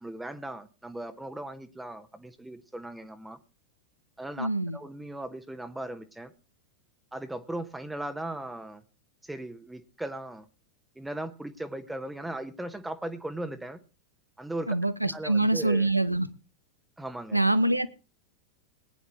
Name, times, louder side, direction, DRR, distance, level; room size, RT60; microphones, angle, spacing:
voice 1, 0.0-3.4 4.2-6.3 7.1-8.8 9.2-10.5 11.0-13.8 14.4-14.8 15.0-15.9 17.0-17.4, right 1 dB, 5° right, 8 dB, 1.2 m, -38 dB
voice 2, 4.4-4.8 14.7-16.3 17.3-17.9, right 2 dB, 90° right, 13 dB, 1.0 m, -25 dB
21.0 x 9.9 x 3.1 m, 0.33 s
figure-of-eight pair, 90°, 0 cm